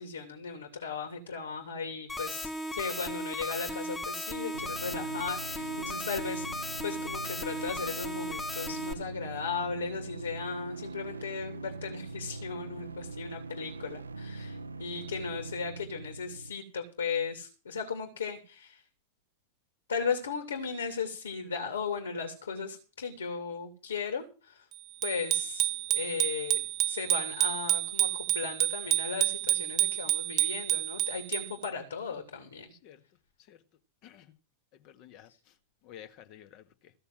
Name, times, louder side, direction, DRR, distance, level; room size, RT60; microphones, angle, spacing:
voice 1, 0.0-18.8 19.9-24.7 25.0-32.7, left 5 dB, 70° left, 3.0 m, -36 dB
sound 1, 2.1-8.9, left 1 dB, 10° left, 1.7 m, -36 dB
sound 2, 4.5-16.5, right 3 dB, 80° right, 0.7 m, -42 dB
Bicycle bell, 25.0-31.7, right 15 dB, 35° right, 0.9 m, -29 dB
voice 2, 32.7-33.0 33.4-33.6 34.0-34.3 34.7-35.6 35.8-36.9, left 11 dB, 40° left, 1.9 m, -53 dB
16.0 x 6.8 x 7.6 m
figure-of-eight pair, 90°, 0 cm